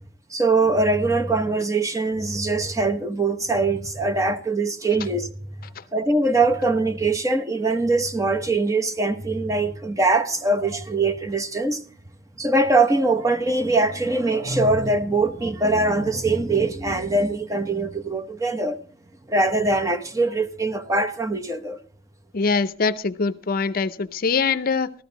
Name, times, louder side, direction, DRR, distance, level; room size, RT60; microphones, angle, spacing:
voice 1, 0.3-5.3 5.9-11.8 12.4-18.8 19.3-21.8, right 2 dB, 20° right, 0.9 m, -22 dB
voice 2, 22.3-24.9, left 4 dB, 50° left, 0.6 m, -23 dB
14.0 x 14.0 x 4.0 m
head